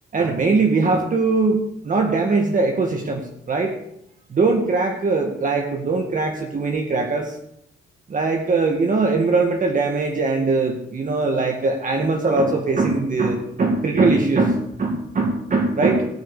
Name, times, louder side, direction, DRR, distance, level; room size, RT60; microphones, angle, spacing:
voice 1, 0.1-1.6 1.8-3.8 4.3-7.4 8.1-16.1, right 3 dB, 40° right, 2 dB, 2.3 m, -21 dB
17.0 x 6.6 x 8.5 m, 0.77 s
cardioid pair, 90°, 20 cm